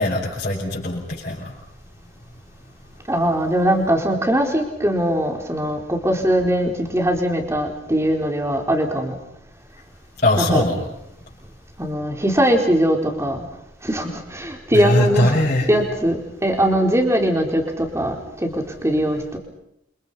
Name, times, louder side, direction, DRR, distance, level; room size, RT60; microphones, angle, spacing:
voice 1, 0.0-1.5 10.2-10.8 14.7-15.7, left 1 dB, 40° left, -7 dB, 7.0 m, -20 dB
voice 2, 3.1-9.1 10.4-10.6 11.8-13.4 13.8-15.3 15.7-19.4, equal, 15° right, 3 dB, 4.3 m, -21 dB
29.0 x 27.0 x 5.7 m, 0.78 s
head